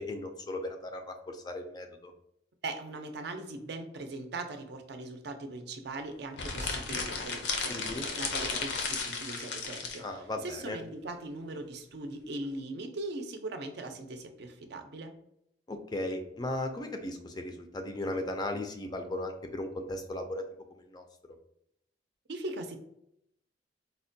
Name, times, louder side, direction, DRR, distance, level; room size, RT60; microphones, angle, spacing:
voice 1, 0.0-2.1 7.7-8.1 10.0-10.8 15.7-20.4 20.8-21.0, left 1 dB, 25° left, 5 dB, 0.3 m, -36 dB
voice 2, 2.6-10.1 10.4-15.1 22.3-22.8, right 2 dB, 65° right, 6 dB, 0.5 m, -40 dB
sound 1, 6.3-10.0, left 4 dB, 80° left, 0.6 m, -34 dB
4.2 x 2.1 x 2.6 m, 0.77 s
head